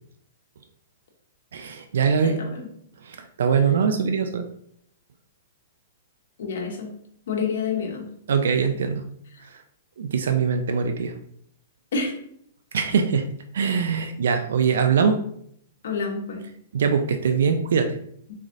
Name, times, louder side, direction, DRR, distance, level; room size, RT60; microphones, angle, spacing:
voice 1, 1.5-2.4 3.0-4.5 8.3-9.0 10.0-11.1 12.7-13.3 13.5-15.2 16.7-18.0, right 6 dB, 75° right, 7 dB, 0.4 m, -22 dB
voice 2, 2.2-2.7 6.4-6.9 7.3-8.1 11.9-12.1 15.8-16.4, left 5 dB, 70° left, 1 dB, 1.1 m, -28 dB
3.7 x 3.1 x 2.6 m, 0.67 s
hypercardioid pair, 140°, 0 cm